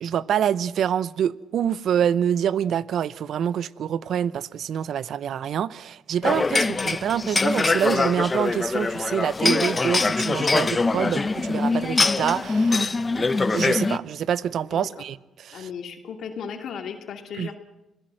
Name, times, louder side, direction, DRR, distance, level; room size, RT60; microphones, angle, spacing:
voice 1, 0.0-15.7 17.4-17.5, right 9 dB, 65° right, 0.7 m, -26 dB
sound 1, 6.2-14.0, left 3 dB, 25° left, 0.8 m, -23 dB
voice 2, 15.5-17.6, left 7 dB, 70° left, 2.6 m, -35 dB
26.5 x 17.5 x 7.7 m
cardioid pair, 90°, 0 cm